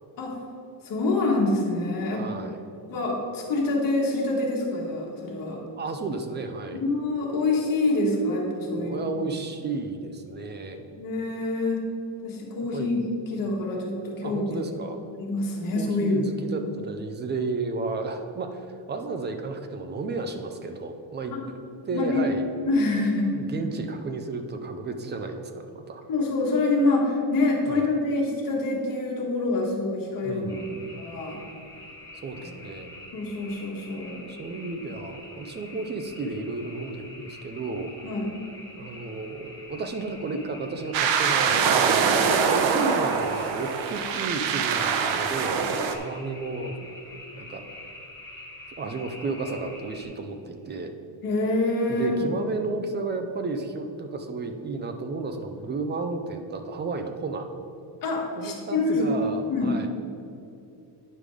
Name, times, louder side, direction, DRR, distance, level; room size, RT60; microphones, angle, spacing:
voice 1, 0.8-2.2 2.9-5.6 6.7-9.0 10.9-11.8 12.2-13.0 13.3-14.5 15.1-16.2 21.3-21.4 21.9-22.3 22.7-23.3 26.1-30.4 31.0-31.4 33.1-34.2 38.0-38.3 42.7-42.8 51.2-52.2 58.0-59.1 59.5-59.8, left 2 dB, 50° left, -1 dB, 1.7 m, -26 dB
voice 2, 2.1-2.6 5.8-6.8 8.7-10.9 12.7-13.0 14.2-15.0 15.8-21.6 21.9-22.5 23.3-26.0 27.7-27.8 30.2-30.9 32.2-32.9 34.3-37.9 38.8-45.6 45.9-46.9 47.3-47.7 48.8-50.9 51.9-57.5 58.4-59.9, right 3 dB, 25° right, 6 dB, 0.4 m, -33 dB
sound 1, 30.5-50.0, left 1 dB, 5° left, 1.6 m, -46 dB
sound 2, 40.9-46.0, right 6 dB, 90° right, 0.9 m, -23 dB
9.5 x 5.1 x 4.8 m, 2.8 s
cardioid pair, 175°, 44 cm